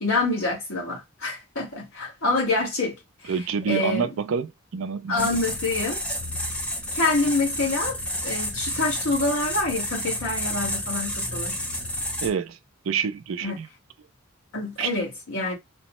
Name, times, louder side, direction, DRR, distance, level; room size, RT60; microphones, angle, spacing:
voice 1, 0.0-3.0 3.2-3.3 3.7-4.1 5.1-6.0 6.9-11.6 13.4-13.6 14.5-15.5, left 2 dB, 90° left, 1.5 m, -26 dB
voice 2, 3.3-5.4 12.2-12.6 12.9-13.7 14.8-14.9, right 6 dB, 75° right, 0.4 m, -27 dB
sound 1, 5.2-12.3, equal, 5° left, 0.5 m, -30 dB
3.0 x 2.1 x 2.9 m
head